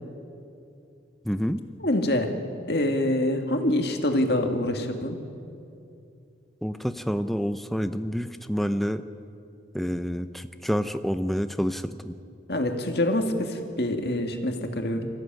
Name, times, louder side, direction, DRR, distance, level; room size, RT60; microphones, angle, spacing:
voice 1, 1.2-1.6 6.6-9.0 9.7-12.2, equal, ahead, 9 dB, 0.7 m, -28 dB
voice 2, 1.8-2.3 2.7-5.2 12.5-15.1, left 1 dB, 55° left, 4 dB, 2.1 m, -25 dB
24.0 x 15.0 x 9.1 m, 2.6 s
head